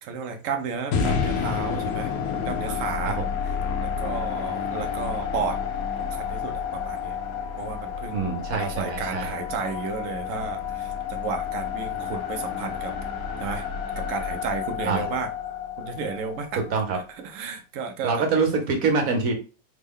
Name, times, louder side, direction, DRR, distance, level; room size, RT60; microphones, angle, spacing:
voice 1, 0.0-2.1 2.4-5.6 6.0-7.2 7.6-8.1 8.5-12.9 13.4-13.6 14.0-15.3 15.8-16.6 17.2-18.3, right 5 dB, 85° right, 0.7 m, -33 dB
sound 1, 0.9-17.1, left 7 dB, 70° left, 0.9 m, -30 dB
voice 2, 8.1-9.3 14.9-15.1 16.7-17.0 18.0-19.3, right 4 dB, 60° right, 1.1 m, -25 dB
3.5 x 2.1 x 3.6 m
omnidirectional pair, 1.9 m